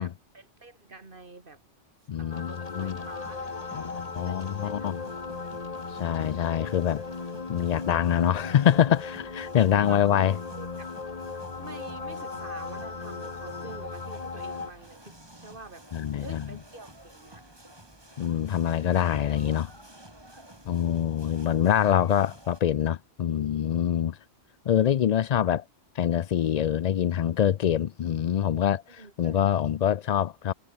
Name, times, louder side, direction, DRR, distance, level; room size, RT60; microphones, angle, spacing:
voice 1, 0.0-1.6 2.2-5.1 9.7-10.9 11.6-17.4 20.7-21.1 28.9-29.6, right 3 dB, 45° right, 2.7 m, -47 dB
voice 2, 2.1-3.0 3.7-5.0 5.9-7.0 7.5-10.4 15.9-16.4 18.2-19.7 20.7-24.2 24.7-25.6 26.0-30.5, left 10 dB, 85° left, 0.3 m, -25 dB
sound 1, 2.3-14.7, left 4 dB, 30° left, 1.3 m, -37 dB
sound 2, 2.6-22.6, right 1 dB, 20° right, 3.6 m, -51 dB
omnidirectional pair, 1.3 m